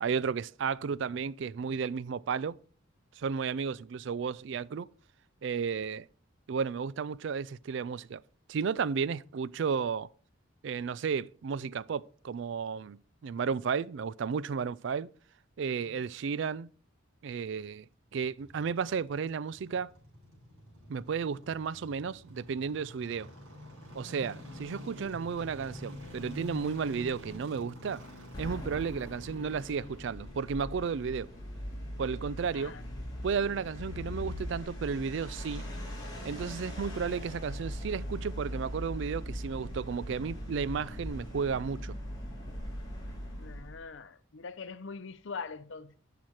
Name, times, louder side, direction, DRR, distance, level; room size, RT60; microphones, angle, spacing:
voice 1, 0.0-2.5 3.2-4.9 5.4-6.1 6.5-8.2 8.5-10.1 10.6-13.0 13.2-15.1 15.6-16.7 17.2-17.9 18.1-19.9 20.9-23.3 23.9-28.0 28.4-31.3 32.0-32.8 33.2-35.7 36.2-41.9, right 6 dB, 60° right, 0.3 m, -33 dB
sound 1, 18.1-33.3 33.6-33.7, left 1 dB, 90° right, 4.5 m, -48 dB
sound 2, 28.3-43.8, equal, 20° left, 3.2 m, -40 dB
voice 2, 32.5-33.0 43.4-46.0, left 5 dB, 60° left, 0.6 m, -43 dB
10.5 x 6.0 x 4.7 m
head